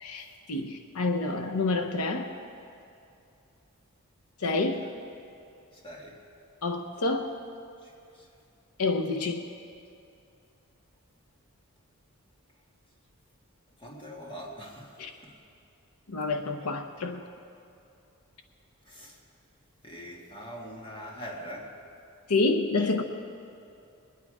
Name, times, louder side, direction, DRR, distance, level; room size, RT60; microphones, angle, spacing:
voice 1, 0.0-2.3 4.4-4.8 6.6-7.4 8.8-9.5 15.0-15.1 16.1-17.2 22.3-23.0, left 3 dB, 85° left, 5 dB, 0.8 m, -28 dB
voice 2, 5.7-6.3 7.8-8.3 13.8-15.4 18.9-19.2 19.8-21.8, equal, 20° left, -1 dB, 1.8 m, -43 dB
20.5 x 9.4 x 4.9 m, 2.6 s
head